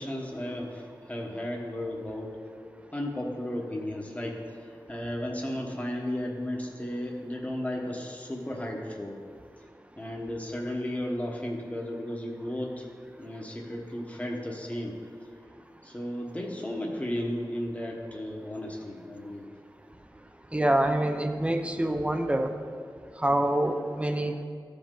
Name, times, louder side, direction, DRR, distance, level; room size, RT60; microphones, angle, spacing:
voice 1, 0.0-2.4 2.9-9.2 10.0-12.9 13.2-15.0 15.8-19.5, left 1 dB, 15° left, 0 dB, 1.1 m, -34 dB
voice 2, 20.5-22.6 23.2-24.4, right 1 dB, 15° right, 6 dB, 0.6 m, -26 dB
13.5 x 5.2 x 3.8 m, 2.2 s
wide cardioid pair, 65°, 8 cm